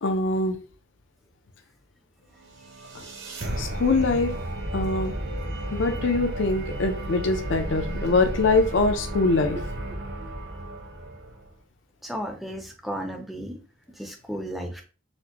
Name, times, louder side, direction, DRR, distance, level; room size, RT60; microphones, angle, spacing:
voice 1, 0.0-0.6 2.9-3.0 3.6-4.4 4.7-5.1 5.7-9.6, left 3 dB, 65° left, 7 dB, 0.5 m, -23 dB
sound 1, 2.4-11.5, right 1 dB, 55° right, 0.7 m, -33 dB
voice 2, 12.0-13.6 14.0-14.8, equal, ahead, 3 dB, 0.5 m, -34 dB
4.2 x 2.1 x 2.9 m, 0.36 s
head